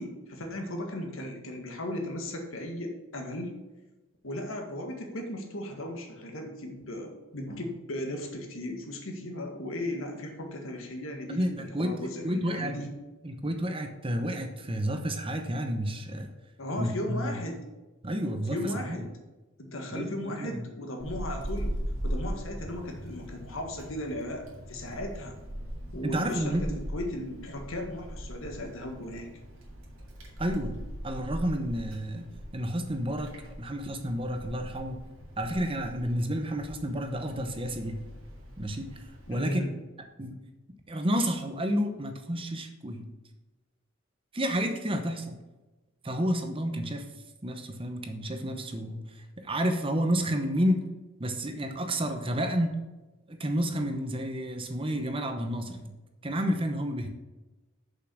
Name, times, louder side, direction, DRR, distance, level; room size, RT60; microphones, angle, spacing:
voice 1, 0.0-3.5 4.2-11.4 11.8-12.9 16.6-17.6 18.5-19.1 19.6-21.8 22.0-25.4 25.9-29.3 39.3-39.7, left 1 dB, 75° left, 3 dB, 1.7 m, -36 dB
voice 2, 11.3-11.9 12.2-12.8 13.2-16.3 16.8-17.3 18.0-18.6 18.9-19.0 19.9-20.6 26.0-26.8 30.4-30.7 31.0-32.3 32.5-35.0 35.4-38.0 38.6-38.8 39.3-39.7 40.2-40.4 40.9-43.1 44.3-45.4 46.0-47.0 47.4-49.0 49.4-50.8 51.2-52.7 53.3-55.9 56.2-57.1, equal, 25° right, 6 dB, 0.9 m, -30 dB
Wind, 21.0-39.5, equal, 85° right, 2.2 m, -40 dB
6.9 x 5.6 x 6.3 m, 1.1 s
head